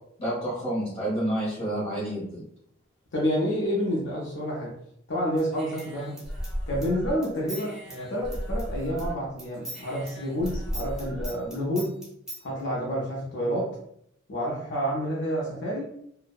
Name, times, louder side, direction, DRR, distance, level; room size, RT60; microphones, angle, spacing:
voice 1, 0.2-2.4, right 1 dB, 30° left, -7 dB, 0.9 m, -29 dB
voice 2, 3.1-4.7 5.1-6.1 6.7-12.0 12.4-13.8 14.3-15.9, equal, 60° left, -4 dB, 0.5 m, -29 dB
Human voice / Scissors, 5.4-9.1 9.4-12.4, equal, 5° right, 0.6 m, -35 dB
2.6 x 2.0 x 2.3 m, 0.72 s
head